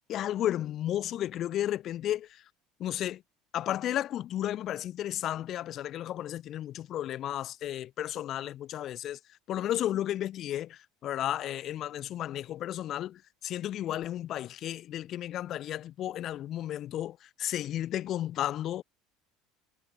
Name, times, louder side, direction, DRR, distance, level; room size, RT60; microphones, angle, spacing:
voice 1, 0.1-2.3 2.8-3.2 3.5-9.2 9.5-18.8, left 12 dB, 45° left, 2.0 m, -33 dB
figure-of-eight pair, 70°, 0 cm